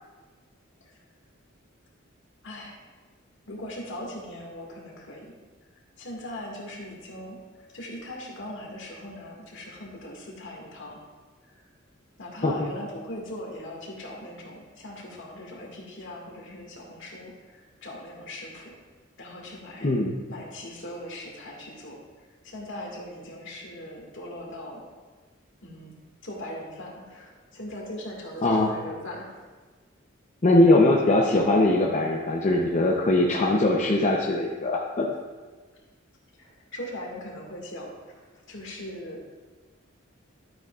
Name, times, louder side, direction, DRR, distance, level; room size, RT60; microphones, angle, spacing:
voice 1, 2.4-2.8 3.5-5.3 6.0-7.4 7.7-11.0 11.5-11.6 12.2-18.7 19.2-19.9 20.3-22.0 22.4-24.8 25.6-25.9 26.2-29.4 36.4-39.2, left 1 dB, 65° left, -1 dB, 1.9 m, -40 dB
voice 2, 19.8-20.1 28.4-28.7 30.4-35.1, left 2 dB, 35° left, -1 dB, 0.7 m, -21 dB
12.0 x 8.6 x 2.4 m, 1.4 s
head